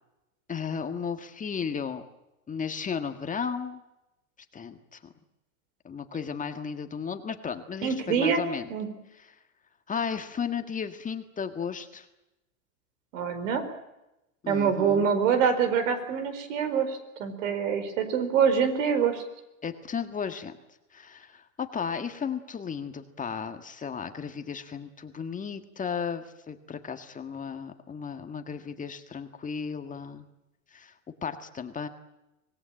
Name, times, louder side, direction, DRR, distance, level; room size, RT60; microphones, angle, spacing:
voice 1, 0.5-2.0 2.5-3.8 4.5-5.0 5.8-8.7 9.9-12.1 14.4-15.1 19.6-20.5 20.9-30.3 30.7-30.9 31.2-31.9, left 6 dB, 20° left, 7 dB, 1.7 m, -34 dB
voice 2, 7.8-8.4 8.7-8.9 13.1-13.6 14.5-19.2, right 7 dB, 65° right, 9 dB, 4.8 m, -25 dB
25.5 x 18.5 x 8.9 m, 0.94 s
hypercardioid pair, 115°, 42 cm